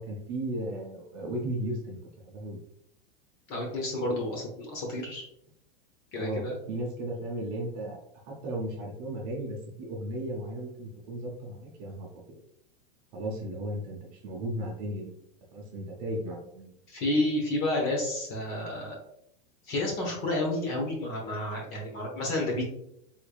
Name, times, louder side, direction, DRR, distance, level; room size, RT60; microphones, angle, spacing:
voice 1, 0.0-2.0 2.2-2.6 6.1-8.0 8.3-12.4 13.1-15.1 15.5-16.8, right 1 dB, 30° right, -2 dB, 0.7 m, -35 dB
voice 2, 3.5-5.3 6.1-6.5 16.9-19.0 19.7-22.6, left 1 dB, 30° left, -1 dB, 1.0 m, -30 dB
3.6 x 3.3 x 2.3 m, 0.73 s
supercardioid pair, 175°, 29 cm